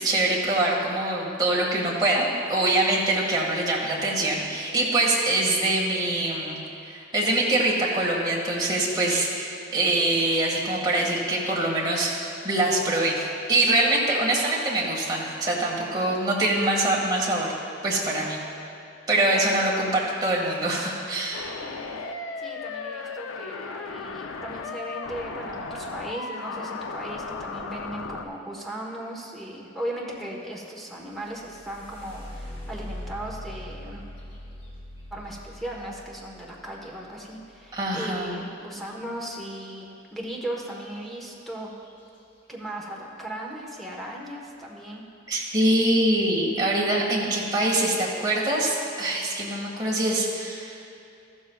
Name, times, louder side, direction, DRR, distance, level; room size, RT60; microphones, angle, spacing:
voice 1, 0.0-17.5 17.8-18.4 19.1-21.5 37.7-38.4 45.3-50.8, right 1 dB, 20° right, -4 dB, 1.8 m, -24 dB
voice 2, 19.2-19.8 21.6-21.8 22.4-34.0 35.1-41.7 42.5-45.0, right 1 dB, ahead, -3 dB, 1.2 m, -37 dB
sound 1, 21.3-28.3, left 4 dB, 75° left, 0.6 m, -35 dB
sound 2, 31.0-38.9 40.9-41.1 41.5-42.1 42.7-42.8 43.3-43.6, left 1 dB, 30° left, 1.8 m, -42 dB
14.0 x 12.5 x 2.4 m, 2.7 s
head